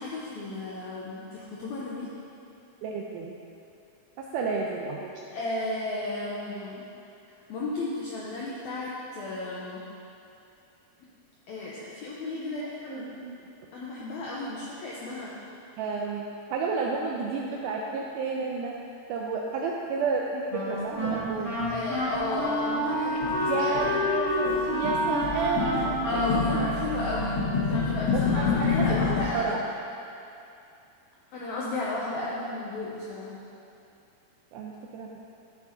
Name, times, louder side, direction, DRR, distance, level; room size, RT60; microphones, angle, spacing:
voice 1, 0.0-2.1 5.3-6.8 7.5-9.8 11.5-13.1 13.7-15.3 21.7-24.0 26.0-29.5 31.3-33.4, left 2 dB, 75° left, -6 dB, 1.7 m, -33 dB
voice 2, 2.8-3.3 4.3-5.1 12.3-13.4 15.8-16.2 16.5-18.7 19.1-21.6 23.5-26.0 26.5-26.6 28.1-29.6 34.5-35.2, right 4 dB, 85° right, -1 dB, 1.8 m, -31 dB
Wind instrument woodwind instrument, 20.5-27.9, equal, 30° left, 2.1 m, -29 dB
sound 1, 20.7-22.5 22.8-29.2, left 5 dB, 55° left, 1.3 m, -30 dB
13.5 x 6.9 x 2.8 m, 2.7 s
omnidirectional pair, 4.2 m